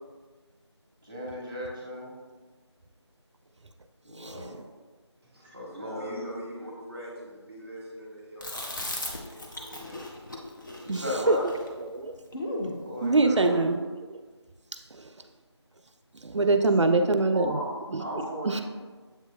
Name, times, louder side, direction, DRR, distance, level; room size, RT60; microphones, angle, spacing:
voice 1, 1.0-2.1 4.0-4.6 5.4-6.2 10.8-11.4 12.8-13.6 16.5-16.9 17.3-17.7 18.0-18.6, left 1 dB, 15° right, -5 dB, 1.0 m, -35 dB
voice 2, 4.2-4.6 10.9-11.5 11.8-12.1 13.0-13.9 14.9-15.1 16.2-18.0 18.4-18.6, right 3 dB, 80° right, 7 dB, 0.4 m, -25 dB
voice 3, 5.2-10.1, equal, ahead, -16 dB, 0.7 m, -42 dB
Chewing mastication, 8.4-12.8, left 1 dB, 45° left, 0.7 m, -37 dB
7.3 x 3.0 x 2.3 m, 1.4 s
figure-of-eight pair, 170°, 15 cm